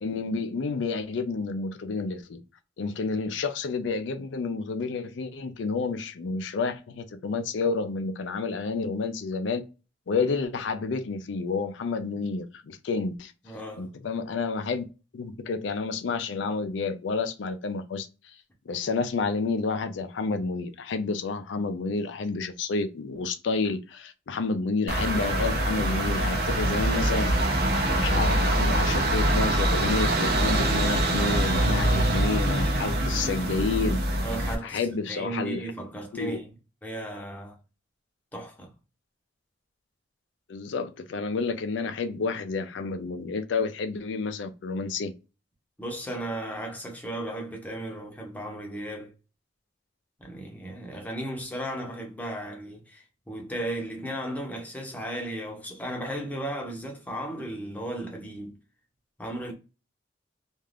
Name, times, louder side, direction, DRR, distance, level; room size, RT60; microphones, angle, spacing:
voice 1, 0.0-2.4 2.8-9.6 10.1-13.3 13.8-14.8 15.1-18.1 18.7-27.3 27.9-34.0 34.6-35.6 36.1-36.4 40.5-45.1, left 4 dB, 70° left, 0.4 m, -30 dB
voice 2, 13.4-13.9 34.2-36.4 36.8-37.6 38.3-38.7 45.8-49.1 50.2-58.6 59.2-59.5, right 1 dB, 10° left, 0.7 m, -35 dB
sound 1, 24.9-34.5, right 1 dB, 55° right, 0.7 m, -24 dB
2.5 x 2.3 x 3.2 m
head